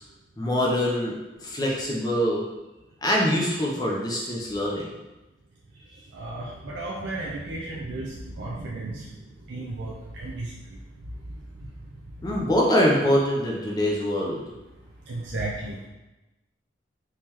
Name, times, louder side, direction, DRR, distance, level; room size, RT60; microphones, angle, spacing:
voice 1, 0.4-1.2 1.4-2.4 3.0-4.9 12.2-14.4, equal, 20° left, -3 dB, 0.5 m, -24 dB
voice 2, 6.1-9.1 9.5-10.5 15.1-15.9, right 2 dB, 65° right, -4 dB, 0.5 m, -34 dB
3.7 x 3.1 x 2.9 m, 1.1 s
head